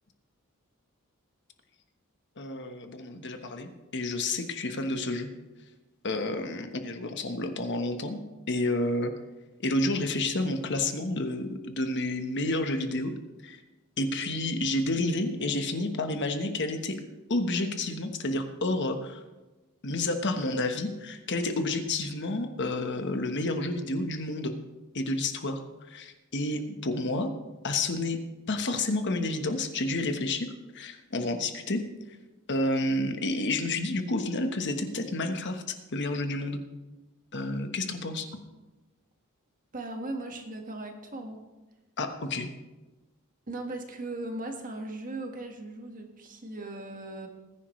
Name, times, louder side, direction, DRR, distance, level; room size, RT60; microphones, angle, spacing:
voice 1, 2.4-5.3 6.0-8.2 8.5-9.1 9.6-13.1 13.4-13.6 14.0-17.0 17.3-19.2 19.8-24.5 24.9-25.6 25.9-27.3 27.6-28.2 28.5-31.8 32.5-35.6 35.9-36.6 37.3-38.3 42.0-42.5, left 2 dB, 55° left, 7 dB, 1.2 m, -30 dB
voice 2, 39.7-41.4 43.5-47.3, right 2 dB, 40° right, 3 dB, 1.6 m, -38 dB
19.5 x 10.5 x 3.2 m, 1.1 s
head